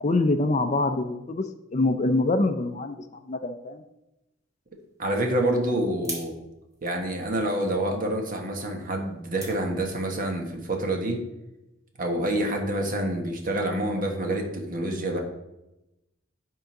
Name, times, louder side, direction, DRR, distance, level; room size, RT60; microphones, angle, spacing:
voice 1, 0.0-1.4 1.7-3.0 3.3-3.8, left 2 dB, 35° left, 8 dB, 0.5 m, -24 dB
sound 1, 4.7-10.3, right 1 dB, 15° right, 2.3 m, -45 dB
voice 2, 5.0-6.3 6.8-11.2 12.0-15.2, right 1 dB, 45° right, 2 dB, 1.4 m, -27 dB
10.0 x 3.8 x 5.8 m, 0.94 s
head